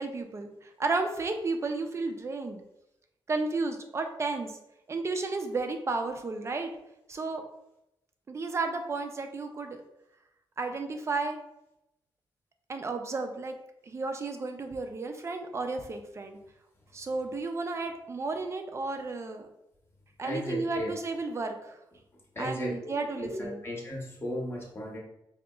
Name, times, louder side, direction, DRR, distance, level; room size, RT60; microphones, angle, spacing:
voice 1, 0.0-2.6 3.3-4.6 4.9-6.7 7.1-7.4 8.3-9.8 10.6-11.4 12.7-13.6 13.8-16.4 16.9-19.5 20.2-21.8 22.4-23.6, right 3 dB, 30° right, 5 dB, 0.4 m, -33 dB
voice 2, 20.2-20.9 22.3-25.0, left 1 dB, 25° left, -2 dB, 0.9 m, -35 dB
4.9 x 2.7 x 2.3 m, 0.85 s
wide cardioid pair, 155°, 9 cm